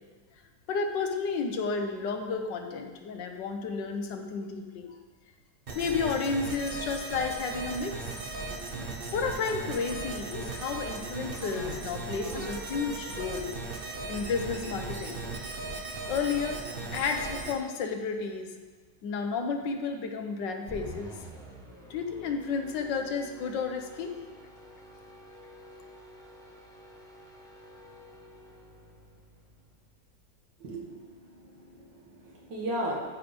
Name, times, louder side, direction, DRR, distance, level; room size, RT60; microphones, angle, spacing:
voice 1, 0.7-4.9 5.7-8.0 9.1-13.5 14.1-15.2 16.0-18.5 19.0-21.2 21.9-24.2, left 5 dB, 85° left, 5 dB, 1.6 m, -32 dB
sound 1, 5.7-17.5, right 3 dB, 35° right, 1.1 m, -37 dB
sound 2, 20.7-30.0, right 1 dB, ahead, 1.0 m, -49 dB
voice 2, 30.6-33.0, right 1 dB, 80° right, -2 dB, 2.4 m, -36 dB
13.0 x 4.9 x 5.2 m, 1.5 s
omnidirectional pair, 1.9 m